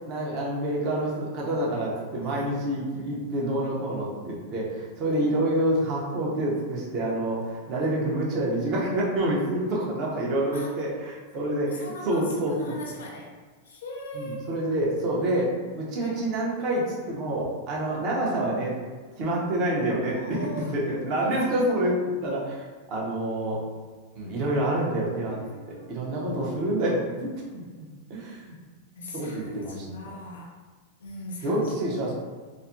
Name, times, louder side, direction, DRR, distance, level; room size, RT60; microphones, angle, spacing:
voice 1, 0.1-12.7 14.1-18.7 19.2-20.5 20.7-23.6 24.1-25.4 25.7-27.6 28.1-28.6 29.1-29.7 31.4-32.1, right 1 dB, 45° right, -4 dB, 0.9 m, -27 dB
voice 2, 11.6-13.4 13.6-14.7 16.0-16.2 20.1-20.8 21.2-21.6 25.3-26.1 29.0-30.6 31.0-31.7, left 1 dB, 80° left, -1 dB, 0.5 m, -39 dB
3.2 x 2.1 x 2.7 m, 1.4 s
hypercardioid pair, 105°, 0 cm